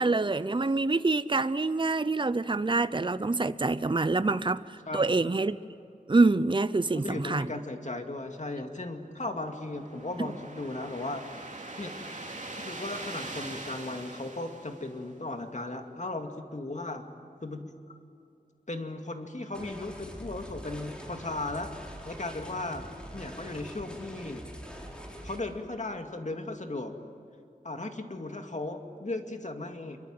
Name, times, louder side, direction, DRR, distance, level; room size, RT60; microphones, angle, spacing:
voice 1, 0.0-5.6 6.1-7.5 10.2-10.3, right 3 dB, 30° right, 0.7 m, -26 dB
voice 2, 6.9-11.2 11.8-11.9 12.5-17.1 17.4-17.7 18.7-21.7 22.0-22.9 23.1-24.4 25.2-26.9 27.6-30.0, left 2 dB, 50° left, 2.3 m, -36 dB
sound 1, 8.9-15.4, right 2 dB, 50° right, 2.9 m, -43 dB
sound 2, 19.5-25.4, equal, 5° left, 4.6 m, -44 dB
27.0 x 23.5 x 7.8 m
wide cardioid pair, 60°, 16 cm